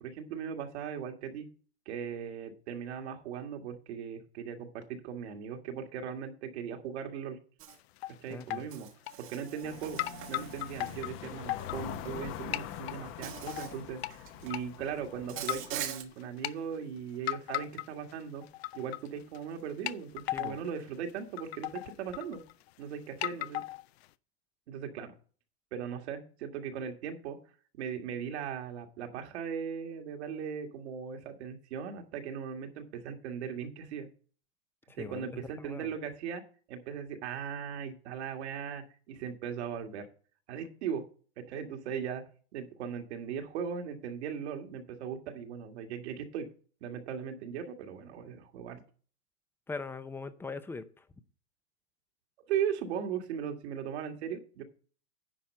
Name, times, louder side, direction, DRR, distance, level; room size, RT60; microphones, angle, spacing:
voice 1, 0.0-1.5 1.9-7.4 8.2-8.9 9.2-10.0 10.3-18.4 18.7-22.4 22.8-23.6 24.7-25.1 25.7-27.4 27.8-34.1 35.0-36.4 36.7-40.1 40.5-41.0 41.4-42.2 42.5-46.5 46.8-48.8 52.5-54.6, right 7 dB, 65° right, 4 dB, 1.9 m, -38 dB
Insect, 7.6-7.8 8.7-11.3 12.4-12.6 13.2-13.8 14.1-14.6 15.3-16.0, right 11 dB, 35° right, 1.2 m, -42 dB
sound 1, 7.7-8.1 8.4-8.7 9.1-9.7 10.0-12.3 12.5-13.0 13.5-14.1 14.5-14.6 15.4-15.8 16.2-16.5 17.3-18.1 18.4-19.1 19.3-19.4 19.9-20.7 21.1-21.2 21.4-22.7 23.2-24.1, left 17 dB, 60° left, 0.5 m, -36 dB
voice 2, 8.3-8.6 20.3-20.6 34.9-35.3 35.6-35.9 49.7-51.0, left 4 dB, 5° left, 12 dB, 0.5 m, -41 dB
sound 2, 9.6-15.9, left 10 dB, 35° left, 0.8 m, -44 dB
10.0 x 4.5 x 7.5 m, 0.42 s
hypercardioid pair, 130°, 35 cm